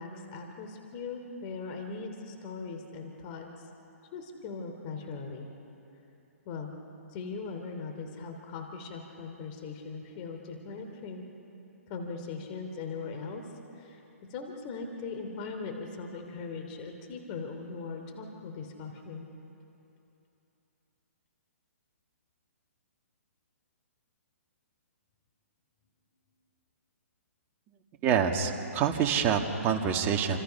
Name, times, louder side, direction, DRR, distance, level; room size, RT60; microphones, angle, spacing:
voice 1, 0.0-3.5 4.1-5.5 6.5-6.7 7.1-11.2 11.9-13.5 13.8-14.0 14.3-19.3, left 4 dB, 35° left, 4 dB, 2.8 m, -39 dB
voice 2, 28.0-30.4, right 7 dB, 25° right, 3 dB, 1.9 m, -26 dB
28.5 x 26.5 x 5.8 m, 3.0 s
hypercardioid pair, 145°, 8 cm